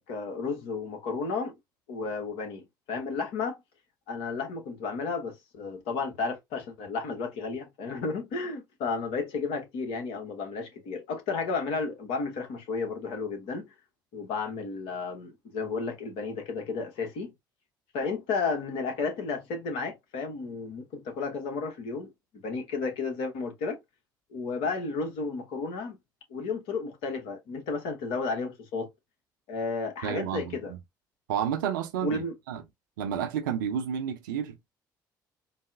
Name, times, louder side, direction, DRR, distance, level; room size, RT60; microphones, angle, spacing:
voice 1, 0.0-1.5 1.9-3.6 4.1-13.7 14.1-17.3 17.9-22.1 22.4-23.8 24.3-26.0 26.3-28.9 29.5-30.7 32.0-32.3, left 4 dB, 60° left, 1.0 m, -32 dB
voice 2, 30.0-30.8 31.3-32.6 33.0-34.7, right 8 dB, 75° right, 0.5 m, -31 dB
3.9 x 2.0 x 2.5 m
figure-of-eight pair, 50°, 11 cm